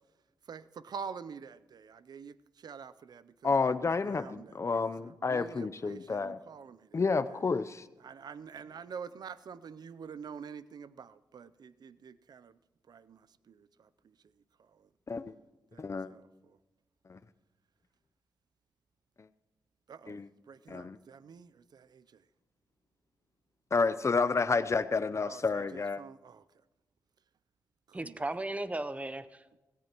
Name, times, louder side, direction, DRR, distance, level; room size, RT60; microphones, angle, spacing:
voice 1, 0.5-4.8 5.1-7.4 8.0-12.6 12.9-13.9 14.8-14.9 15.7-16.6 19.9-20.2 20.5-22.2 25.2-26.4 27.9-28.2, right 6 dB, 65° right, 16 dB, 0.5 m, -47 dB
voice 2, 3.4-6.4 6.9-7.8 15.1-15.3 15.8-16.1 17.1-17.2 20.1-20.3 20.7-21.0 23.7-26.0, left 4 dB, 40° left, 13 dB, 0.6 m, -30 dB
voice 3, 27.9-29.6, right 2 dB, 20° right, 12 dB, 0.7 m, -36 dB
17.0 x 16.5 x 3.0 m, 1.1 s
cardioid pair, 55°, 7 cm